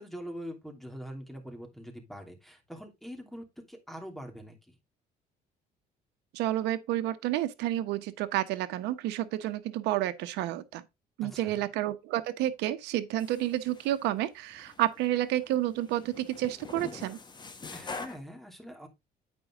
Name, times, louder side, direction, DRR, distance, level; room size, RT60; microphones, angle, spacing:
voice 1, 0.0-4.8 11.2-11.6 17.7-18.9, equal, ahead, 2.9 m, -43 dB
voice 2, 6.3-10.8 11.2-17.2, right 14 dB, 90° right, 1.1 m, -30 dB
sound 1, 13.2-14.1 14.5-15.1 15.4-18.2, left 4 dB, 25° left, 1.5 m, -44 dB
8.8 x 5.5 x 3.7 m
cardioid pair, 110°, 17 cm